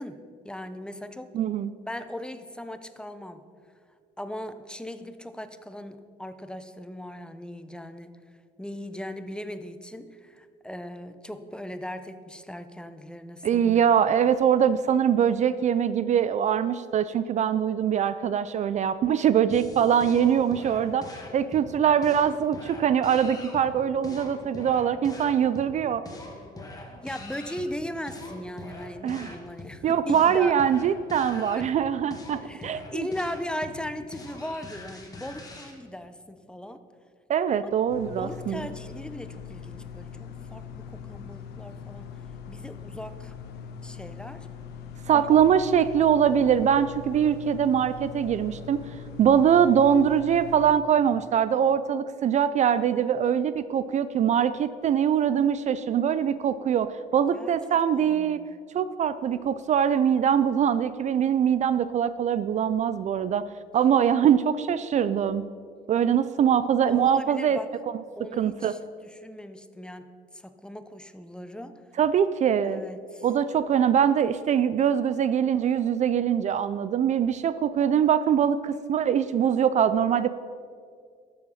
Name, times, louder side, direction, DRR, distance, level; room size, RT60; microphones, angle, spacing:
voice 1, 0.0-1.4 1.9-3.4 4.2-8.2 8.6-13.8 26.6-30.5 31.4-31.7 32.4-36.8 37.6-37.7 38.1-42.1 42.5-43.3 43.8-44.5 45.1-45.4 57.3-58.5 63.9-64.0 66.9-67.7 68.1-71.8 72.6-73.3, left 1 dB, 5° left, 10 dB, 0.6 m, -38 dB
voice 2, 1.3-1.7 13.4-21.1 21.3-26.0 29.0-29.3 29.8-33.1 37.3-38.7 45.1-48.8 49.2-58.4 58.7-63.4 63.7-65.4 65.9-67.6 68.3-68.7 72.0-72.8 73.2-80.3, right 8 dB, 45° right, 14 dB, 0.4 m, -23 dB
sound 1, 19.5-35.7, left 2 dB, 20° left, 1.9 m, -43 dB
sound 2, 37.9-50.8, left 7 dB, 80° left, 1.0 m, -41 dB
12.5 x 7.6 x 5.6 m, 2.1 s
cardioid pair, 110°, 17 cm